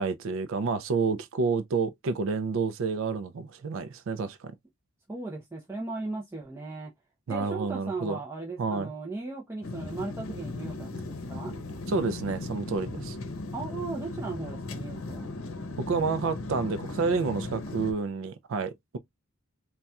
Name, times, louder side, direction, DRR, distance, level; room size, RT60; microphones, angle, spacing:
voice 1, 0.0-4.5 7.3-8.2 8.6-8.9 11.9-13.2 15.8-19.0, right 4 dB, 65° right, 0.4 m, -29 dB
voice 2, 5.1-6.9 7.3-11.6 13.5-15.3, right 3 dB, 10° right, 0.6 m, -37 dB
sound 1, 9.6-17.9, left 2 dB, 70° left, 0.7 m, -37 dB
4.0 x 2.2 x 2.2 m
head